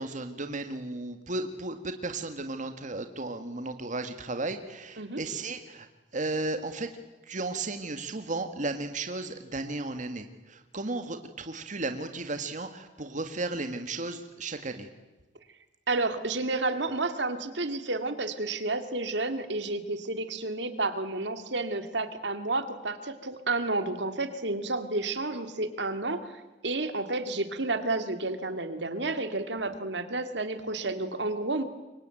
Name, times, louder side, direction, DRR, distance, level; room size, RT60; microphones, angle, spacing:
voice 1, 0.0-5.9 6.1-6.9 7.3-14.9, right 2 dB, 45° right, 7 dB, 1.8 m, -34 dB
voice 2, 15.9-26.4 26.6-31.6, right 2 dB, 75° right, 9 dB, 2.3 m, -31 dB
27.5 x 23.5 x 9.1 m, 1.1 s
head